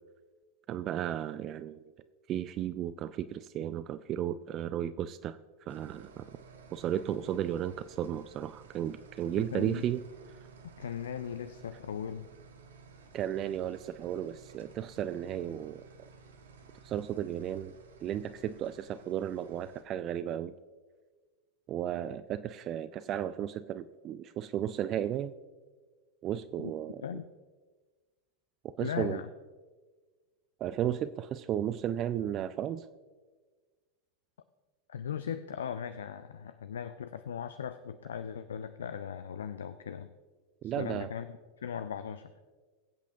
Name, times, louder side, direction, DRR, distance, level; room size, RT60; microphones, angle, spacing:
voice 1, 0.7-1.8 2.3-5.4 5.7-6.3 6.7-10.0 13.1-15.8 16.8-17.7 18.0-20.5 21.7-25.3 26.2-27.0 28.6-29.2 30.6-32.9 40.6-41.1, right 10 dB, 35° right, 14 dB, 0.3 m, -34 dB
sound 1, 5.7-19.8, right 4 dB, 65° right, 1.2 m, -55 dB
voice 2, 9.3-9.8 10.8-12.3 26.6-26.7 27.0-27.2 28.8-29.3 34.9-40.1 40.6-42.3, left 8 dB, 65° left, 11 dB, 0.4 m, -38 dB
21.5 x 8.2 x 2.7 m, 1.4 s
figure-of-eight pair, 90°, 0 cm